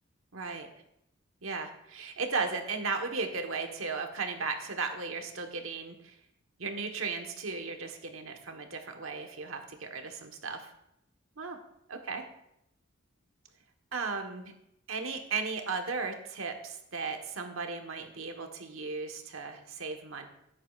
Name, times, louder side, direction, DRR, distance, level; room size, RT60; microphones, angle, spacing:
voice 1, 0.3-0.7 1.4-6.2 6.6-10.7 11.4-11.6 11.9-12.2 13.9-14.5 14.9-20.3, right 4 dB, 85° right, 5 dB, 1.3 m, -36 dB
16.0 x 8.4 x 2.4 m, 0.80 s
head